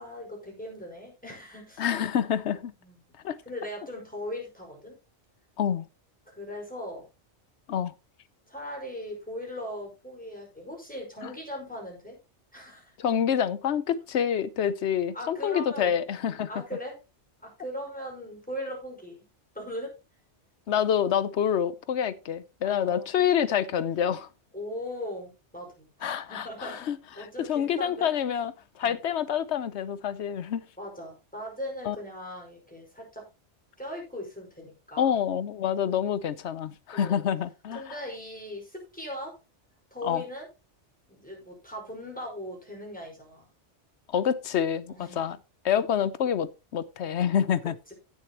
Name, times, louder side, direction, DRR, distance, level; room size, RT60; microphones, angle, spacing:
voice 1, 0.0-1.9 2.8-3.0 3.4-4.9 6.2-7.0 8.5-12.2 12.5-12.9 15.1-15.9 16.5-17.0 17.4-19.2 19.5-19.9 22.6-23.1 24.5-26.9 27.1-28.1 28.8-29.0 30.8-33.3 33.8-35.1 36.9-37.2 37.7-39.3 39.9-40.5 41.1-43.5 44.9-45.3, left 1 dB, 5° left, 5.2 m, -39 dB
voice 2, 1.8-2.7 3.2-3.4 5.6-5.9 7.7-7.9 11.2-11.3 13.0-16.5 20.7-24.3 26.0-27.0 27.4-28.5 28.8-30.6 31.8-32.0 35.0-37.8 40.0-40.2 44.1-45.4 45.6-47.7, left 8 dB, 75° left, 1.0 m, -27 dB
16.0 x 6.8 x 3.0 m
omnidirectional pair, 1.2 m